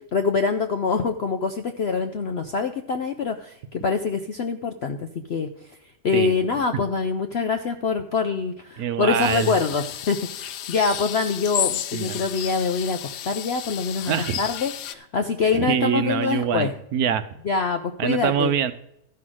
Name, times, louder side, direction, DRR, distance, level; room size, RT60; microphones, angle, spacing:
voice 1, 0.0-5.5 6.0-16.7 17.4-18.5, left 5 dB, 60° left, 7 dB, 0.6 m, -25 dB
voice 2, 8.8-9.5 11.9-12.2 14.1-14.4 15.5-17.2 18.0-18.7, right 9 dB, 70° right, 11 dB, 1.1 m, -24 dB
sound 1, 9.2-14.9, left 11 dB, 80° left, 1.2 m, -32 dB
13.0 x 5.7 x 6.2 m, 0.78 s
omnidirectional pair, 1.8 m